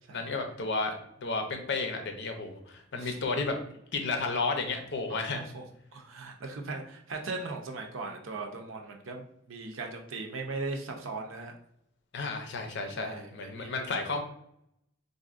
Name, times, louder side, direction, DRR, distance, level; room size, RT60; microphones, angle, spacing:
voice 1, 0.1-3.6 3.9-5.5 12.1-14.2, left 3 dB, 60° left, 4 dB, 0.6 m, -32 dB
voice 2, 5.1-5.6 5.9-11.5 13.0-13.9, right 3 dB, 75° right, 3 dB, 0.6 m, -39 dB
4.1 x 2.5 x 2.4 m, 0.74 s
head